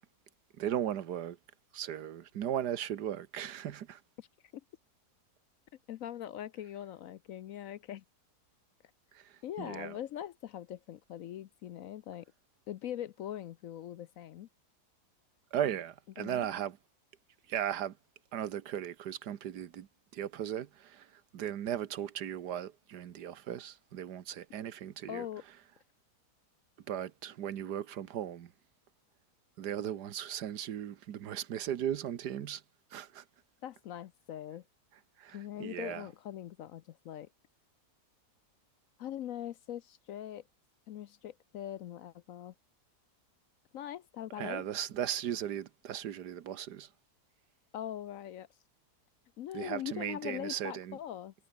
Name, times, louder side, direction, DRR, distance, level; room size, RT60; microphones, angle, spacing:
voice 1, 0.6-1.4 1.7-4.0 9.1-10.0 15.5-16.8 17.5-18.0 18.3-19.9 20.1-25.3 26.9-28.5 29.6-32.6 32.9-33.2 35.2-36.1 44.4-46.9 49.5-51.0, right 10 dB, 80° right, 1.6 m, -37 dB
voice 2, 5.9-8.0 9.4-12.2 12.7-14.5 16.2-16.5 25.1-25.4 33.6-34.6 35.3-37.3 39.0-40.4 40.9-42.5 43.7-44.7 47.7-48.5 49.4-51.3, left 11 dB, 65° left, 0.9 m, -42 dB
omnidirectional pair, 1.7 m